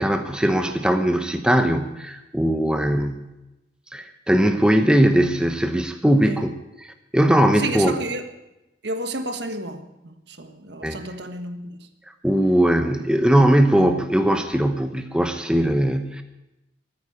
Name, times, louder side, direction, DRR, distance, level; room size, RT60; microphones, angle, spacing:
voice 1, 0.0-3.3 3.9-6.5 6.8-8.0 10.8-11.0 12.2-16.2, right 1 dB, 5° right, 6 dB, 0.8 m, -20 dB
voice 2, 7.6-8.3 8.8-11.9, right 2 dB, 65° right, 7 dB, 1.5 m, -31 dB
14.5 x 9.5 x 8.6 m, 0.96 s
head